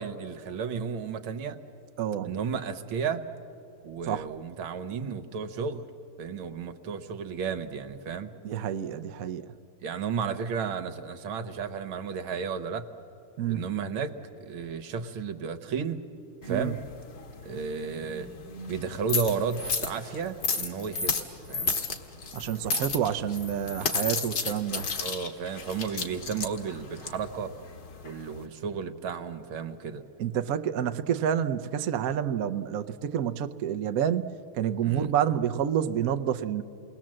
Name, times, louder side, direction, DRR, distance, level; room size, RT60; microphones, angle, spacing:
voice 1, 0.0-1.6 2.2-3.2 3.8-5.9 6.2-8.3 9.8-12.9 13.5-16.0 16.4-16.8 17.5-18.3 18.7-21.8 25.0-27.5 28.0-30.0 34.8-35.1, right 6 dB, 80° right, 9 dB, 1.9 m, -33 dB
voice 2, 2.0-2.3 4.1-4.3 8.4-9.4 13.4-13.6 16.5-16.7 22.3-24.9 30.2-36.6, right 9 dB, 65° right, 8 dB, 0.9 m, -28 dB
sound 1, 16.4-28.5, left 4 dB, 55° left, 2.1 m, -33 dB
28.5 x 21.0 x 7.6 m, 2.9 s
omnidirectional pair, 2.3 m